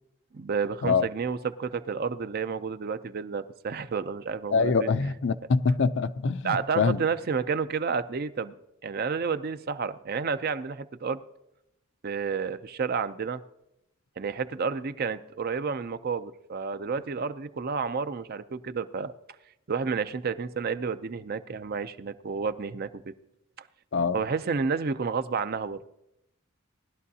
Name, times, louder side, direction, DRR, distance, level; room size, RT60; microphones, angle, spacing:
voice 1, 0.3-4.9 6.4-8.5 8.8-11.2 12.0-13.4 14.2-19.1 19.7-23.0 24.1-25.8, right 5 dB, 45° right, 0.5 m, -30 dB
voice 2, 4.5-7.0 23.9-24.2, left 4 dB, 60° left, 0.5 m, -24 dB
19.5 x 11.5 x 2.8 m
head